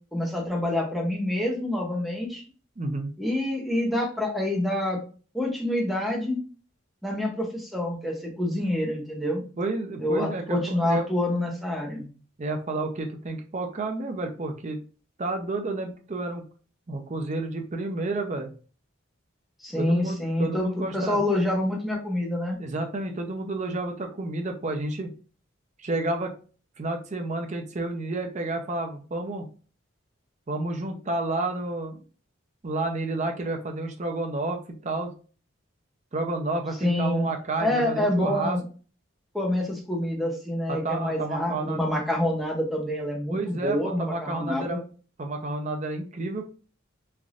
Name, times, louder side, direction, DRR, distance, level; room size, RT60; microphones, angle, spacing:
voice 1, 0.1-2.4 3.2-5.0 5.3-6.4 7.0-9.4 10.0-12.0 19.6-22.6 36.8-37.3 37.6-38.6 39.3-44.8, left 1 dB, ahead, -1 dB, 0.7 m, -27 dB
voice 2, 2.8-3.1 9.6-11.1 12.4-14.8 15.2-16.4 16.9-18.5 19.8-21.2 22.6-25.1 25.8-26.3 26.8-29.5 30.5-32.0 32.6-35.1 36.1-38.6 40.7-41.8 43.3-44.8 45.2-46.4, right 2 dB, 35° right, 4 dB, 0.5 m, -30 dB
3.2 x 2.6 x 2.4 m, 0.38 s
head